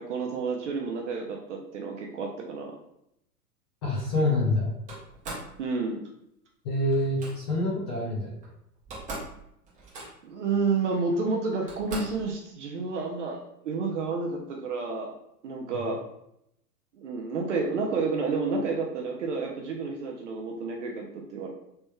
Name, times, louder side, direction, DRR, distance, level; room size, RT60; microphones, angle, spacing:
voice 1, 0.0-2.8 5.6-6.0 10.2-15.1 15.4-16.0 17.0-21.5, right 4 dB, 50° right, 1 dB, 0.6 m, -30 dB
voice 2, 3.8-4.7 6.6-8.3, left 1 dB, 20° left, -8 dB, 0.4 m, -26 dB
Slam, 4.9-5.5 6.9-7.3 8.4-8.5 8.8-9.4 9.6-10.4 11.1-11.2 11.7-12.3, right 2 dB, 15° right, 0.8 m, -39 dB
3.3 x 3.0 x 2.2 m, 0.77 s
figure-of-eight pair, 110°, 49 cm